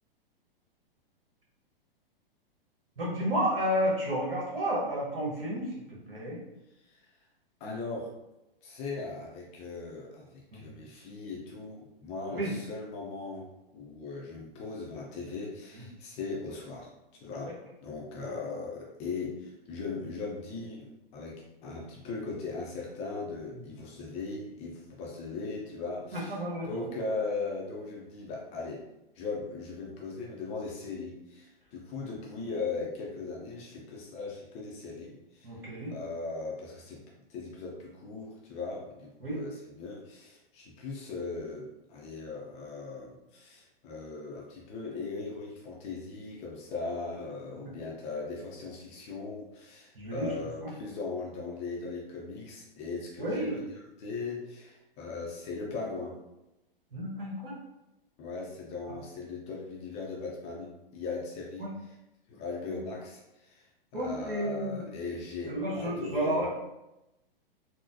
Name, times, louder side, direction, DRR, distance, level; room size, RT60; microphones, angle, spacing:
voice 1, 3.0-6.4 10.5-10.6 12.3-12.5 15.7-15.8 17.4-17.5 23.5-23.6 26.1-26.9 35.4-35.9 39.2-39.4 47.5-47.6 49.9-50.3 50.6-50.7 53.2-53.6 56.9-57.5 58.9-59.0 61.6-61.7 62.7-62.8 63.9-64.9 65.5-66.5, equal, 70° right, -4 dB, 1.3 m, -32 dB
voice 2, 7.6-8.1 8.6-13.5 13.7-16.9 17.2-17.5 17.8-26.4 26.6-28.8 29.2-35.5 35.9-37.0 37.3-53.6 54.0-56.2 58.2-61.9 62.3-63.7 63.9-66.4, left 3 dB, 20° left, -2 dB, 0.4 m, -38 dB
3.7 x 2.1 x 2.6 m, 0.94 s
figure-of-eight pair, 110°, 29 cm